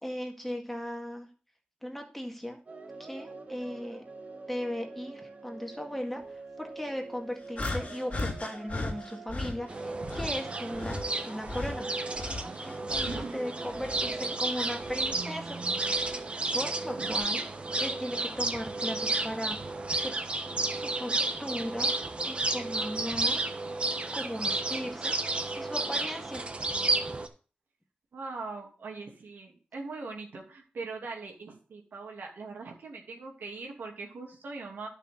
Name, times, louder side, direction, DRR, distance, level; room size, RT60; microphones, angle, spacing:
voice 1, 0.0-1.3 1.8-2.6 3.0-4.0 4.5-11.9 12.6-15.6 16.5-17.4 17.8-19.6 20.0-20.1 20.7-21.9 22.2-23.7 24.1-25.2 25.6-26.4, equal, 5° left, 2 dB, 2.0 m, -37 dB
sound 1, 2.7-12.9, right 3 dB, 50° right, 4.2 m, -47 dB
sound 2, 7.6-9.6 10.1-13.4 13.7-15.2 16.0-16.1 17.1-17.3, left 2 dB, 45° left, 2.8 m, -37 dB
sound 3, 9.7-27.3, right 2 dB, 35° right, 1.1 m, -32 dB
voice 2, 13.0-13.4 16.9-17.2 28.1-34.9, right 3 dB, 85° right, 1 dB, 2.9 m, -41 dB
11.5 x 6.6 x 4.0 m, 0.38 s
wide cardioid pair, 105°, 3 cm